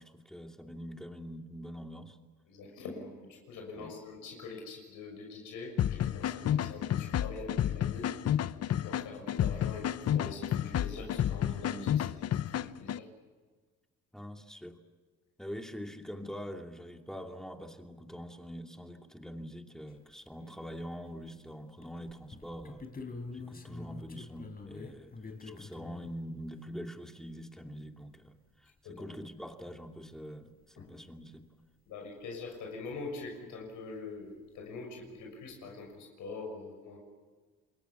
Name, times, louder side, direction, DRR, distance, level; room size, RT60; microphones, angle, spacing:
voice 1, 0.0-2.2 3.7-3.9 14.1-14.8 15.4-22.9 23.3-25.1 25.4-31.5, equal, ahead, 4 dB, 2.7 m, -44 dB
voice 2, 2.5-8.1 8.6-13.1 28.8-29.1 30.8-30.9 31.9-37.0, left 3 dB, 85° left, 1 dB, 6.5 m, -44 dB
sound 1, 5.8-13.0, left 10 dB, 55° left, 0.8 m, -31 dB
sound 2, 19.9-20.0 20.4-21.4 21.8-26.1 28.8-28.9 29.0-29.1 30.2-30.3 30.8-30.9 34.5-34.6 34.8-35.2, left 3 dB, 30° left, 3.7 m, -46 dB
28.5 x 22.0 x 7.2 m, 1.4 s
cardioid pair, 90°, 30 cm